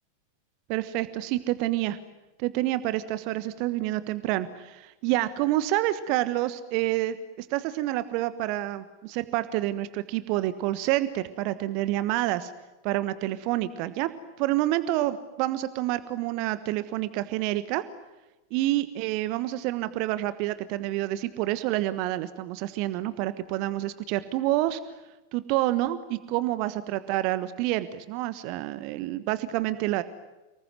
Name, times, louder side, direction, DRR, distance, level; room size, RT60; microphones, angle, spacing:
voice 1, 0.7-2.0 2.4-12.5 12.8-14.1 14.4-17.8 18.5-24.8 25.3-30.0, right 15 dB, 45° right, 13 dB, 1.3 m, -28 dB
29.5 x 20.5 x 9.4 m, 1.1 s
figure-of-eight pair, 90°, 0 cm